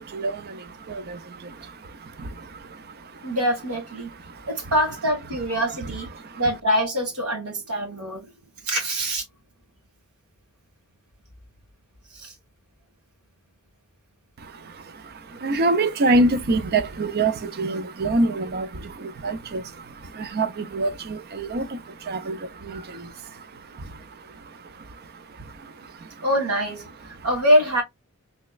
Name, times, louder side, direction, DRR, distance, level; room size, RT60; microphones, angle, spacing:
voice 1, 0.0-3.4 4.0-4.7 5.5-6.4 14.4-26.3 27.1-27.3, right 2 dB, 45° right, 0.5 m, -28 dB
voice 2, 3.2-4.1 4.5-6.1 6.4-8.3 8.6-9.2 12.1-12.3 26.2-27.8, equal, 85° right, 1.7 m, -24 dB
3.4 x 3.1 x 2.3 m
head